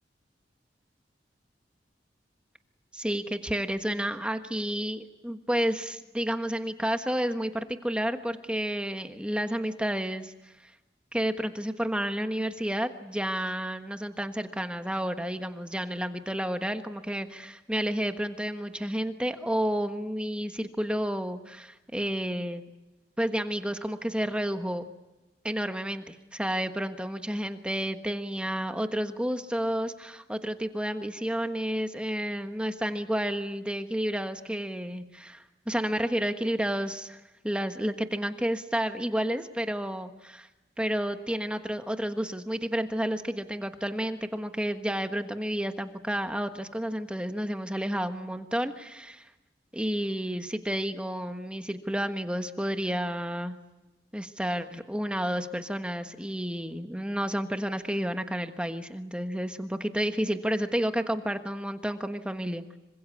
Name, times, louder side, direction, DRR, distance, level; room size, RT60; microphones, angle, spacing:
voice 1, 2.9-10.3 10.6-10.7 11.1-22.6 23.2-24.8 25.4-40.5 40.8-49.3 49.7-53.6 54.1-62.6, equal, 5° right, 7 dB, 1.3 m, -31 dB
26.5 x 25.0 x 8.4 m, 1.0 s
head